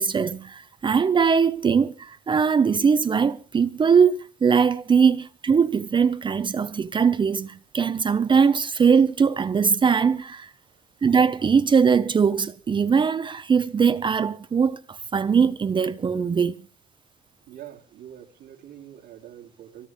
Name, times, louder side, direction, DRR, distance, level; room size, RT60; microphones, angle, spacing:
voice 1, 0.0-10.5 11.0-16.5, right 6 dB, 30° right, 0.7 m, -21 dB
voice 2, 17.5-19.9, right 11 dB, 80° right, 3.1 m, -44 dB
23.0 x 17.5 x 3.5 m
cardioid pair, 110°, 17 cm